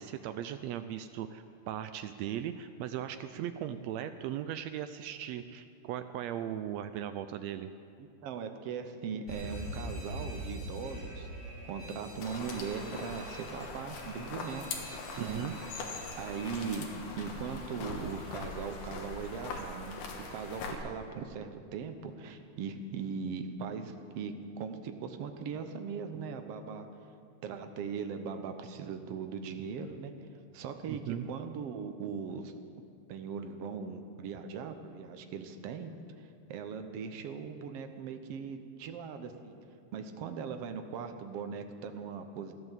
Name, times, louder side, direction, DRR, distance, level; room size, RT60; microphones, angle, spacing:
voice 1, 0.0-7.7 15.2-15.5 30.9-31.3, right 10 dB, 85° right, 10 dB, 1.5 m, -38 dB
voice 2, 8.0-11.3 11.6-14.6 15.2-15.4 16.2-20.0 20.3-26.9 27.4-32.5 33.1-35.9 36.2-39.6 39.9-42.5, right 6 dB, 65° right, 7 dB, 1.6 m, -39 dB
Alarm, 9.3-17.0, equal, 25° left, 3.4 m, -44 dB
sound 1, 12.2-20.7, left 3 dB, 75° left, 2.9 m, -42 dB
15.5 x 11.0 x 7.4 m, 2.4 s
omnidirectional pair, 3.6 m